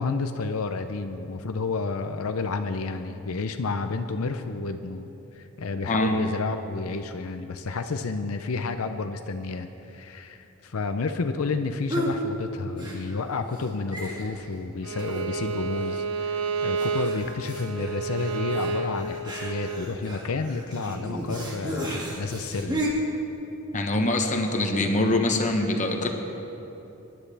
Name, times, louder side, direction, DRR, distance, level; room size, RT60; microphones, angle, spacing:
voice 1, 0.0-22.8, left 4 dB, 75° left, 8 dB, 0.6 m, -30 dB
voice 2, 5.9-6.2 23.7-26.1, left 1 dB, 35° left, 3 dB, 1.1 m, -24 dB
sound 1, 11.9-12.2 12.8-13.3 13.6-13.7 13.9-14.5 15.0-15.5 15.8-15.9 16.8-22.9, equal, 20° right, 1.8 m, -34 dB
Bowed string instrument, 14.8-19.8, right 4 dB, 90° right, 0.8 m, -30 dB
23.5 x 10.5 x 3.4 m, 3.0 s
head